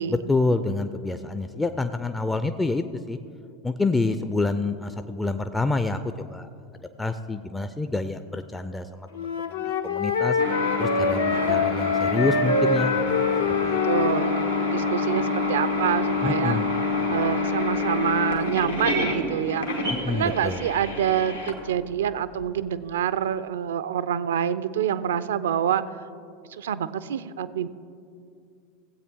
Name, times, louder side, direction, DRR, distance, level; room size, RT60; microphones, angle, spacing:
voice 1, 0.3-3.2 3.6-6.0 6.3-6.5 7.0-10.4 10.8-13.1 13.6-13.8 16.2-16.7 20.0-20.6, left 3 dB, 10° left, 9 dB, 0.4 m, -27 dB
Wind instrument woodwind instrument, 9.1-14.4, left 4 dB, 70° left, 0.6 m, -25 dB
sound 1, 10.4-22.4, left 3 dB, 90° left, 1.5 m, -27 dB
voice 2, 11.3-11.7 13.8-14.4 14.7-16.6 17.1-25.8 26.5-27.7, right 9 dB, 65° right, 15 dB, 0.4 m, -27 dB
17.5 x 8.0 x 3.5 m, 2.5 s
figure-of-eight pair, 80°, 0 cm